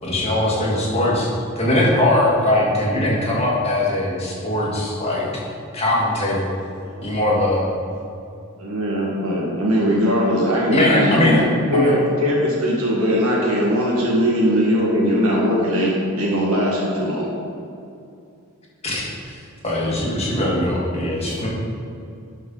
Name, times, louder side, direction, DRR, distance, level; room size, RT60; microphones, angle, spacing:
voice 1, 0.0-1.3 1.6-5.3 5.7-6.4 7.0-7.7 10.7-11.4 11.7-11.9 18.8-19.4 19.6-21.5, left 1 dB, 30° left, -5 dB, 1.9 m, -20 dB
voice 2, 6.3-7.3 21.2-21.5, right 1 dB, 25° right, -7 dB, 1.2 m, -42 dB
voice 3, 8.6-11.4 11.7-17.3, equal, 75° right, -4 dB, 1.8 m, -20 dB
12.0 x 5.5 x 4.0 m, 2.5 s
head